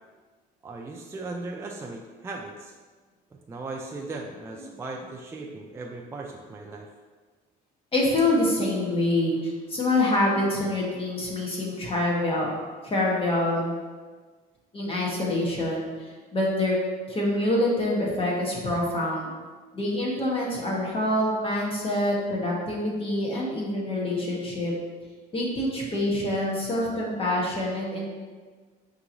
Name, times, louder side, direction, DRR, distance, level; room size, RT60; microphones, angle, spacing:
voice 1, 0.6-2.7 3.3-6.9, right 3 dB, 15° right, 1 dB, 0.3 m, -37 dB
voice 2, 7.9-12.5 12.8-13.7 14.7-16.7 17.1-19.3 19.7-24.7 25.3-28.0, left 1 dB, 35° left, -3 dB, 1.1 m, -26 dB
5.4 x 2.9 x 2.6 m, 1.4 s
cardioid pair, 110°, 17 cm